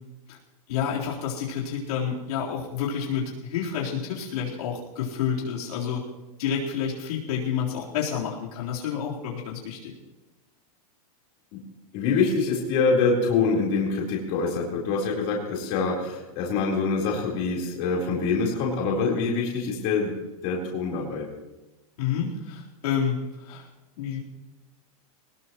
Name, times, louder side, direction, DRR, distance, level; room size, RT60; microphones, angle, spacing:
voice 1, 0.7-6.0 6.4-9.9 22.0-23.6 24.0-24.2, left 7 dB, 75° left, -4 dB, 4.1 m, -29 dB
voice 2, 11.9-20.1 20.4-21.3, left 4 dB, 40° left, -3 dB, 4.1 m, -25 dB
20.5 x 20.0 x 3.1 m, 1.1 s
supercardioid pair, 170°, 19 cm